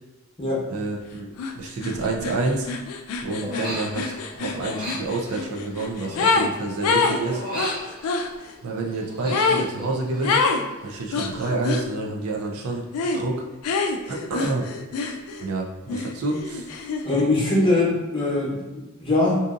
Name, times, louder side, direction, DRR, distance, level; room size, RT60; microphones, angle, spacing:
voice 1, 0.7-2.7 3.2-7.4 8.6-10.4 10.8-12.8 13.1-13.4 14.1-14.7 15.4-16.7, right 3 dB, 90° right, 0 dB, 0.5 m, -28 dB
sound 1, 1.4-1.5 1.8-6.5 6.8-8.3 9.3-9.7 10.2-10.6 11.1-11.9 12.9-13.2 13.6-15.5 15.9-17.3, left 4 dB, 75° left, 0.3 m, -26 dB
Human voice, 3.4-4.2 4.5-6.9 7.2-8.5 8.9-10.7 10.9-11.3, equal, 20° right, 0.8 m, -36 dB
voice 2, 17.0-19.4, left 2 dB, 25° left, -6 dB, 0.8 m, -22 dB
2.6 x 2.5 x 2.4 m, 1.1 s
head